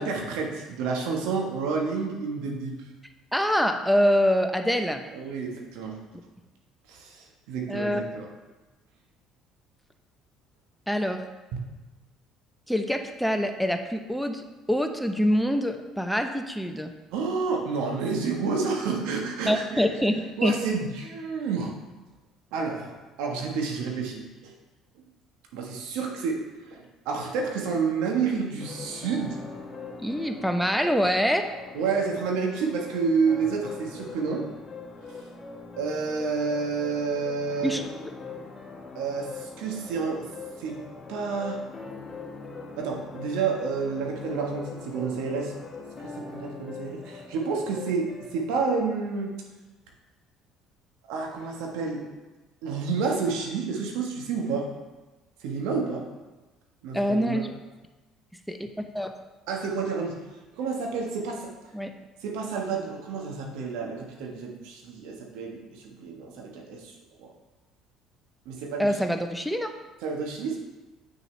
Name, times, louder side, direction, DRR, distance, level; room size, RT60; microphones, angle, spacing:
voice 1, 0.0-2.8 5.1-6.0 6.9-8.3 17.1-19.9 20.4-21.7 22.5-22.9 23.2-24.5 24.9-25.0 25.5-26.4 26.7-29.4 31.7-34.4 35.1-35.2 35.8-37.8 38.9-40.2 40.6-40.8 41.1-41.6 42.8-45.5 46.0-49.3 51.1-52.0 52.6-54.7 55.4-56.0 56.8-57.5 59.5-60.2 60.5-61.5 62.2-66.9 67.2-67.3 68.4-68.9 70.0-70.6, right 5 dB, 75° right, 1 dB, 1.4 m, -29 dB
voice 2, 3.3-5.0 7.7-8.0 10.9-11.2 12.7-16.9 19.5-20.5 30.0-31.5 37.6-37.8 56.9-57.5 58.5-59.1 61.7-61.9 68.8-69.7, equal, ahead, 5 dB, 0.8 m, -25 dB
sound 1, 28.6-48.4, left 4 dB, 30° left, 1.9 m, -42 dB
8.1 x 6.4 x 3.3 m, 1.2 s
hypercardioid pair, 60°, 0 cm